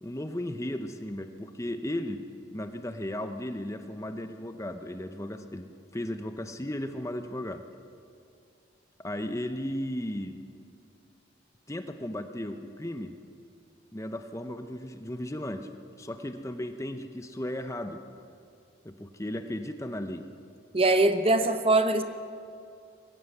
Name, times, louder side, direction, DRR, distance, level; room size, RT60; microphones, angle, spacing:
voice 1, 0.0-2.3 2.5-7.6 9.0-10.4 11.7-13.1 13.9-18.0 18.8-20.3, left 1 dB, 15° left, 8 dB, 0.7 m, -35 dB
voice 2, 20.7-22.0, right 2 dB, 30° right, 9 dB, 0.9 m, -22 dB
22.5 x 15.5 x 7.9 m, 2.5 s
head